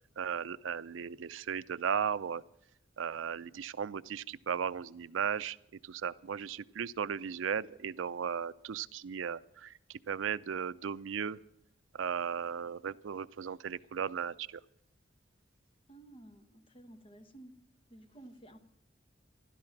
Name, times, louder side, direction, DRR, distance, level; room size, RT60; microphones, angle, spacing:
voice 1, 0.2-2.4 3.0-5.6 5.8-11.4 11.9-14.6, right 7 dB, 85° right, 15 dB, 0.4 m, -36 dB
voice 2, 15.9-17.5 17.9-18.6, right 1 dB, 30° left, 7 dB, 1.2 m, -53 dB
14.0 x 12.5 x 5.9 m, 0.77 s
head